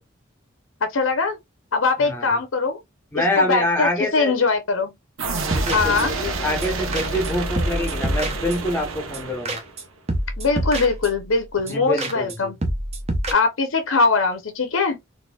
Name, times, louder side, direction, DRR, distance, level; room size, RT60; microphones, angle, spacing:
voice 1, 0.9-1.4 1.7-2.8 3.1-4.9 5.7-6.1 10.4-12.6 13.3-15.0, left 4 dB, 75° left, 0.7 m, -21 dB
voice 2, 2.0-2.4 3.1-4.3 5.4-9.6 11.7-12.5, left 1 dB, 10° left, 0.8 m, -26 dB
sound 1, 5.2-6.3 6.6-6.7 6.9-7.3 7.6-8.8 9.1-9.2 9.4-9.8 10.1-11.3 11.7-11.8 12.0-12.4 12.6-13.3, right 1 dB, 30° right, 0.8 m, -27 dB
sound 2, 5.2-9.9, right 3 dB, 85° right, 0.9 m, -29 dB
4.1 x 2.6 x 2.3 m
head